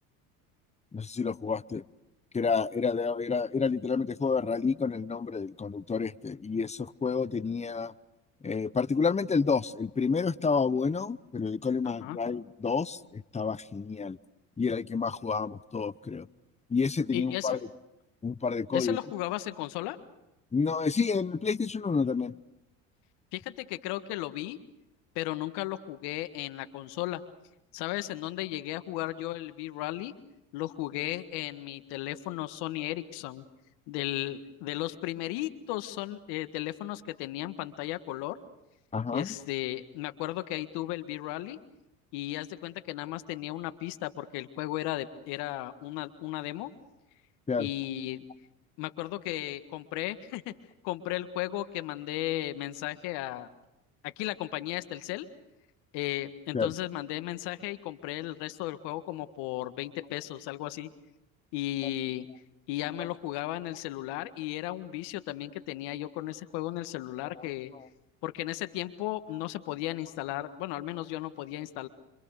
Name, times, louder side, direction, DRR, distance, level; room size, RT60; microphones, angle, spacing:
voice 1, 0.9-1.8 2.3-7.9 8.4-14.2 14.6-16.3 16.7-17.6 18.2-19.0 20.5-22.3 38.9-39.3 47.5-47.7 56.5-56.7, left 5 dB, 15° left, 16 dB, 0.9 m, -29 dB
voice 2, 11.8-12.2 17.1-17.6 18.7-20.0 23.3-24.6 25.1-27.2 27.7-30.1 30.5-33.4 33.9-38.4 39.1-41.6 42.1-46.7 47.6-48.2 48.8-50.5 50.8-53.5 54.0-55.3 55.9-60.9 61.5-62.3 62.7-67.7 68.2-71.9, left 15 dB, 70° left, 11 dB, 1.8 m, -35 dB
27.0 x 25.5 x 6.7 m, 0.91 s
hypercardioid pair, 75°, 41 cm